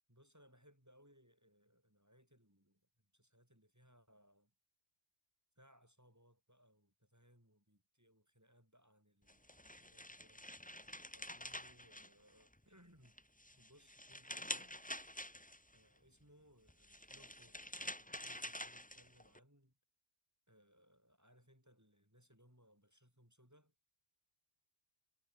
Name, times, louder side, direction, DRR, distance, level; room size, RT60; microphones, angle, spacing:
voice 1, 0.1-4.5 5.6-10.5 11.1-13.2 13.5-14.8 15.7-17.7 18.0-19.8 20.5-23.7, equal, 15° right, 7.1 m, -68 dB
sound 1, 9.3-12.6 13.1-15.8 16.7-19.4, left 1 dB, 5° left, 1.4 m, -48 dB
omnidirectional pair, 1.1 m